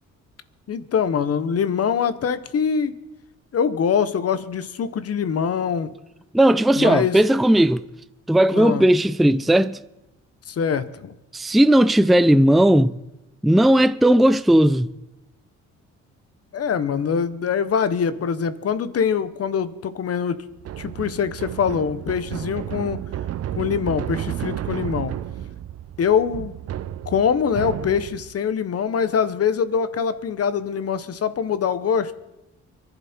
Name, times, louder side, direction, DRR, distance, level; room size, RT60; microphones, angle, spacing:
voice 1, 0.7-2.9 3.5-5.9 6.8-7.2 8.5-8.8 10.5-11.1 16.5-20.4 20.8-23.0 23.5-25.1 26.0-26.5 27.0-32.1, left 7 dB, 50° left, 1.2 m, -23 dB
voice 2, 6.3-7.8 8.3-9.8 11.3-13.0 13.4-14.9, right 1 dB, ahead, 0.5 m, -16 dB
sound 1, 20.6-28.4, right 11 dB, 55° right, 0.6 m, -32 dB
24.5 x 11.5 x 4.5 m
cardioid pair, 90°, 30 cm